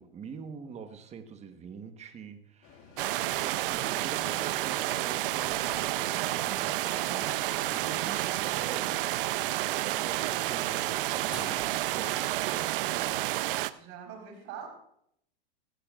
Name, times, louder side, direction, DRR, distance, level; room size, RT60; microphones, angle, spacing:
voice 1, 0.0-9.0 9.8-13.3, right 6 dB, 20° right, 8 dB, 1.2 m, -45 dB
sound 1, 2.6-8.2, left 6 dB, 45° left, 2.0 m, -52 dB
sound 2, 3.0-13.7, right 16 dB, 65° right, 0.6 m, -30 dB
sound 3, 7.3-12.8, right 1 dB, ahead, 2.1 m, -50 dB
voice 2, 13.6-14.7, right 8 dB, 45° right, 2 dB, 4.5 m, -43 dB
16.0 x 15.5 x 2.5 m, 0.71 s
hypercardioid pair, 125°, 30 cm